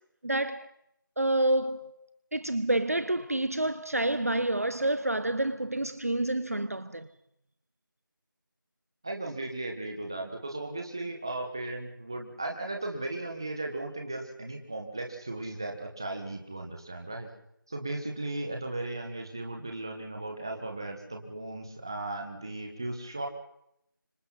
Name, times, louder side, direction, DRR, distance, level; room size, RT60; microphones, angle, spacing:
voice 1, 0.2-0.7 1.2-2.1 2.3-7.1, right 1 dB, 45° right, 0.9 m, -28 dB
voice 2, 9.0-17.3 17.7-23.3, right 2 dB, 10° right, 1.5 m, -36 dB
29.5 x 26.0 x 4.2 m
figure-of-eight pair, 180°, 12 cm